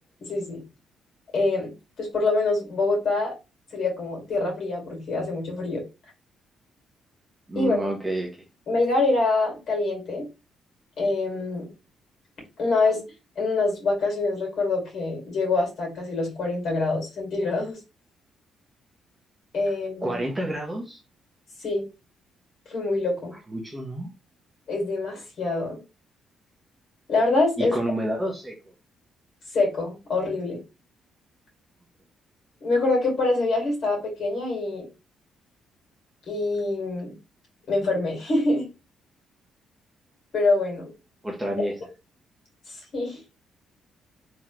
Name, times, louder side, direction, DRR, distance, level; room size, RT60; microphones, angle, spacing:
voice 1, 0.2-0.6 1.3-1.7 2.0-3.4 3.7-5.8 7.6-7.9 8.7-10.3 11.0-11.7 12.6-13.0 13.4-17.8 19.5-20.2 21.6-21.9 22.7-23.4 24.7-25.8 27.1-27.7 29.5-30.6 32.6-34.9 36.3-37.2 37.7-38.7 40.3-40.9 42.7-43.2, left 3 dB, 60° left, 2.4 m, -25 dB
voice 2, 7.5-8.3 20.0-21.0 23.5-24.1 27.6-28.7 41.2-41.8, right 1 dB, 10° right, 1.0 m, -29 dB
3.7 x 3.0 x 3.1 m
cardioid pair, 90°, 0 cm